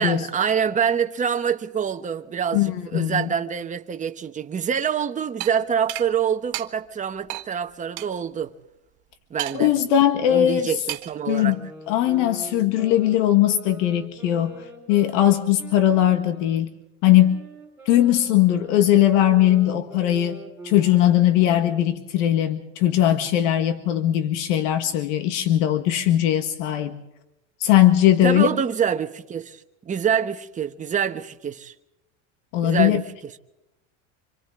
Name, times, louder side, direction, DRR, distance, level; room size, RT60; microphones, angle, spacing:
voice 1, 0.0-8.5 9.3-9.7 10.3-11.6 28.2-29.6 29.8-31.7 32.6-33.0, right 7 dB, 20° right, 1.1 m, -25 dB
voice 2, 2.5-3.3 9.5-10.8 11.3-11.6 11.9-16.7 17.0-17.4 17.9-27.0 27.6-28.5 32.5-33.0, left 12 dB, 85° left, 1.7 m, -19 dB
sound 1, 5.4-5.5 5.9-6.1 6.5-6.7 7.3-7.5 8.0-8.1 9.4-9.8 10.9-11.2, right 21 dB, 65° right, 1.4 m, -31 dB
sound 2, 11.2-16.6 17.1-22.0, right 3 dB, 5° right, 4.7 m, -43 dB
26.5 x 26.0 x 3.8 m
cardioid pair, 150°, 36 cm